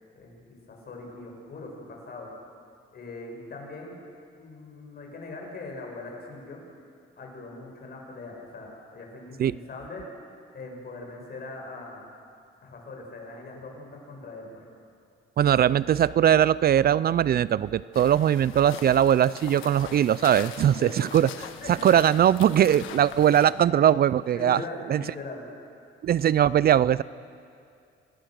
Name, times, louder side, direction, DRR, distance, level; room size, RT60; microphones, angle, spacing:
voice 1, 0.1-2.3 2.9-4.0 4.4-6.6 7.2-10.1 10.5-12.0 12.6-14.7 20.8-21.1 21.6-21.9 24.3-25.5, left 2 dB, 50° left, 0 dB, 6.7 m, -41 dB
voice 2, 15.4-21.3 21.8-24.6 24.9-25.0 26.0-27.0, right 10 dB, 50° right, 19 dB, 0.4 m, -20 dB
sound 1, 17.9-23.5, left 8 dB, 85° left, 1.5 m, -42 dB
26.5 x 19.5 x 6.5 m, 2.4 s
cardioid pair, 90°, 20 cm